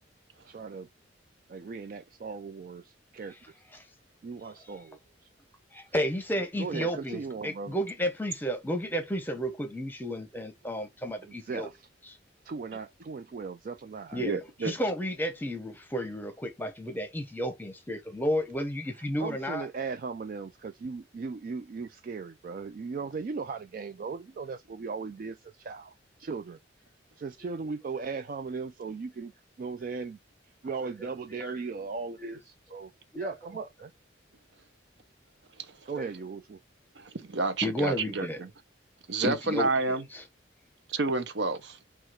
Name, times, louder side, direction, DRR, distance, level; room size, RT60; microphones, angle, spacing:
voice 1, 0.5-0.9 1.5-3.3 4.2-5.0 6.6-7.8 11.2-11.9 12.5-14.2 19.2-25.9 26.2-26.6 27.2-29.3 29.6-30.2 30.6-33.9 35.9-36.6, right 4 dB, 45° right, 0.3 m, -37 dB
voice 2, 5.7-11.7 14.1-19.7 29.6-29.9 31.3-31.5 32.0-32.3 32.7-32.8 33.2-33.3 35.9-36.1 37.6-38.4 39.2-40.2, equal, 10° left, 0.8 m, -32 dB
voice 3, 14.2-14.7 35.7-35.8 37.0-38.5 39.1-40.0 40.9-41.8, right 3 dB, 65° right, 0.7 m, -29 dB
4.7 x 2.4 x 4.3 m
head